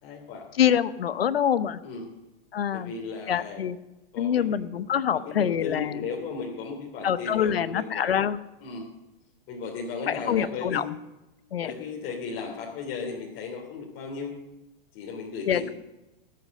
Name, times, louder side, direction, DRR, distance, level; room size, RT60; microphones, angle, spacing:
voice 1, 0.0-0.4 1.8-2.1 2.7-3.6 4.1-4.5 5.1-8.1 8.6-8.9 9.5-10.9 11.6-14.3 14.9-15.7, left 5 dB, 45° left, -1 dB, 3.1 m, -35 dB
voice 2, 0.5-1.8 2.5-2.9 3.3-3.8 4.2-6.0 7.0-8.4 10.1-10.9 11.5-11.7 15.5-15.7, left 9 dB, 90° left, 14 dB, 0.9 m, -25 dB
18.5 x 8.1 x 6.6 m, 1.0 s
hypercardioid pair, 115°, 29 cm